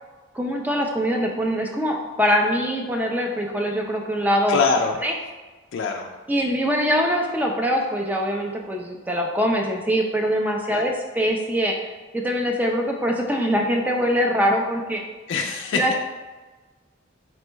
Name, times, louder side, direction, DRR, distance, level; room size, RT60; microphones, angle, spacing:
voice 1, 0.3-4.6 5.0-5.1 6.3-15.0 15.7-16.0, equal, 10° right, 1 dB, 0.4 m, -23 dB
voice 2, 4.5-5.0 5.7-6.1 10.7-10.8 15.3-16.0, left 4 dB, 70° left, 2 dB, 0.3 m, -23 dB
4.3 x 2.0 x 4.4 m, 1.3 s
head